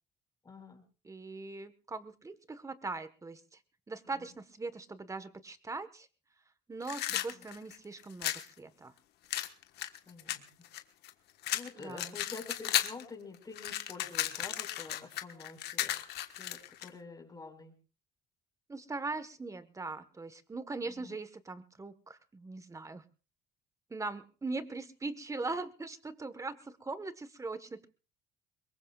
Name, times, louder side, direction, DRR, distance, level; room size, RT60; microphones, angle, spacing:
voice 1, 0.5-0.8 7.1-7.2 10.1-10.7 11.5-15.9 16.4-17.7, left 4 dB, 20° left, 3 dB, 5.2 m, -48 dB
voice 2, 1.0-3.6 3.9-6.1 6.7-8.9 11.7-12.2 18.7-23.0 23.9-27.9, right 3 dB, 20° right, 12 dB, 1.4 m, -41 dB
sound 1, 6.8-8.5 9.3-11.1 11.4-13.0 13.3-16.9, left 13 dB, 75° left, 1.5 m, -34 dB
24.0 x 21.5 x 2.5 m, 0.36 s
cardioid pair, 110°, 17 cm